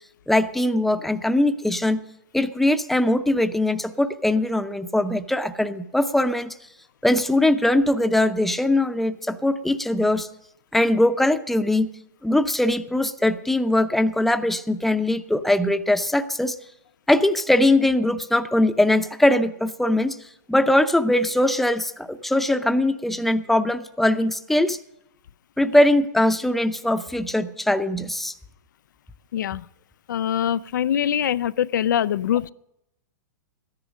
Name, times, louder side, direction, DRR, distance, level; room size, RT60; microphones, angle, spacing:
voice 1, 0.3-2.0 2.3-6.5 7.0-10.3 10.7-11.9 12.2-16.6 17.1-20.2 20.5-24.8 25.6-28.3, left 1 dB, ahead, 0.7 m, -21 dB
voice 2, 30.1-32.5, left 10 dB, 75° left, 0.4 m, -23 dB
13.5 x 10.5 x 6.4 m
hypercardioid pair, 120°, 10 cm